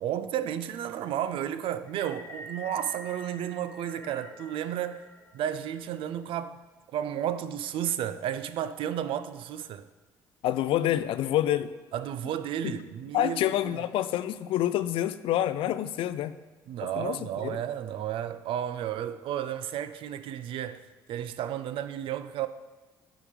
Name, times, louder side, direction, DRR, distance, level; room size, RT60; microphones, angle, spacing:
voice 1, 0.0-5.1 5.3-6.6 6.9-9.9 11.9-13.8 16.7-22.5, right 10 dB, 60° right, 0.4 m, -32 dB
sound 1, 1.9-6.2, left 1 dB, 20° left, 1.4 m, -47 dB
voice 2, 10.4-11.7 12.6-12.7 13.1-16.4 17.0-17.6, left 12 dB, 60° left, 0.4 m, -27 dB
10.0 x 3.7 x 5.1 m
hypercardioid pair, 50°, 10 cm